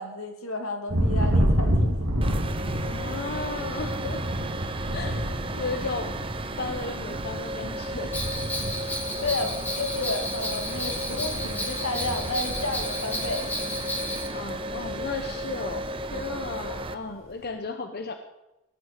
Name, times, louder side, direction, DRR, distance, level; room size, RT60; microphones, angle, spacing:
voice 1, 0.0-2.0 5.0-5.1 8.9-13.5 16.7-16.8, left 2 dB, 80° left, 5 dB, 2.4 m, -32 dB
Thunder, 0.9-13.8 14.1-14.7 15.0-16.5, equal, 65° right, 3.1 m, -30 dB
sound 1, 2.2-16.9, right 1 dB, 25° right, 0.9 m, -34 dB
voice 2, 2.7-4.3 4.9-5.2 5.6-6.1 6.6-8.2 14.3-18.1, left 4 dB, 50° left, 7 dB, 1.0 m, -34 dB
Bell, 8.1-14.3, left 1 dB, 10° left, 2.1 m, -33 dB
17.5 x 9.6 x 6.6 m, 0.93 s
head